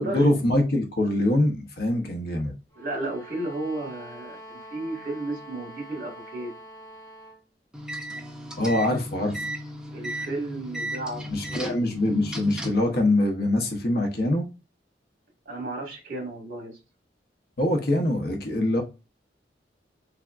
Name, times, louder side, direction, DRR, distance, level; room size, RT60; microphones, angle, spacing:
voice 1, 0.0-2.5 8.6-9.5 11.3-14.4 17.6-18.8, left 1 dB, 60° left, 0.8 m, -24 dB
sound 1, 2.7-7.4, equal, 20° left, 1.1 m, -45 dB
voice 2, 2.8-6.5 9.9-11.2 11.5-11.8 15.5-16.8, right 2 dB, 55° right, 1.7 m, -33 dB
sound 2, 7.7-12.9, right 1 dB, 5° right, 0.5 m, -36 dB
3.5 x 3.4 x 2.4 m
head